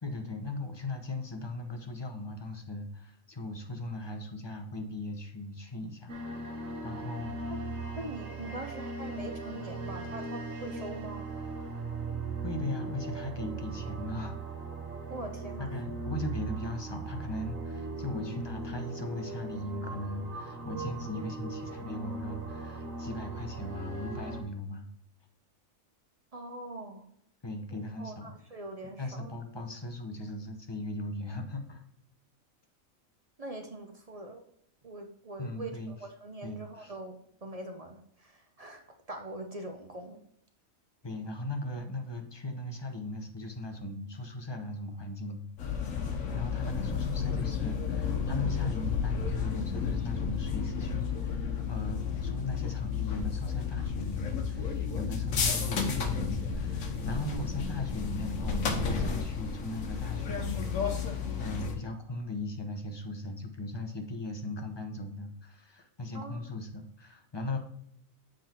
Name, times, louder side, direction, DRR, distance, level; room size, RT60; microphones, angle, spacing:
voice 1, 0.0-6.1 6.8-7.3 12.4-14.4 15.6-24.9 27.4-28.3 29.0-31.8 35.4-36.1 36.4-37.0 41.0-45.5 46.3-67.6, left 2 dB, 25° left, 4 dB, 0.8 m, -38 dB
sound 1, 6.1-24.4, right 3 dB, 85° right, 1.6 m, -39 dB
voice 2, 8.0-11.2 15.1-15.7 26.3-27.1 27.7-29.3 33.4-34.4 34.8-38.8 39.1-40.2 66.1-66.4, right 2 dB, 35° right, 4 dB, 0.6 m, -42 dB
sound 2, 45.6-61.7, left 6 dB, 85° left, 1.4 m, -32 dB
7.6 x 3.9 x 4.3 m, 0.70 s
omnidirectional pair, 1.4 m